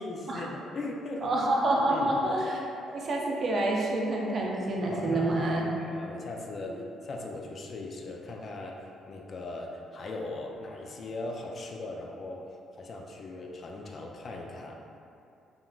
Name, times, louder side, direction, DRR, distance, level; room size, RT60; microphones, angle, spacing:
voice 1, 0.0-1.3 1.9-2.2 4.9-14.8, left 2 dB, 50° left, 0 dB, 0.3 m, -39 dB
voice 2, 1.2-2.6 2.9-5.7 6.7-6.8, right 1 dB, 50° right, -2 dB, 0.5 m, -28 dB
3.5 x 2.3 x 2.4 m, 2.6 s
supercardioid pair, 70°, 0 cm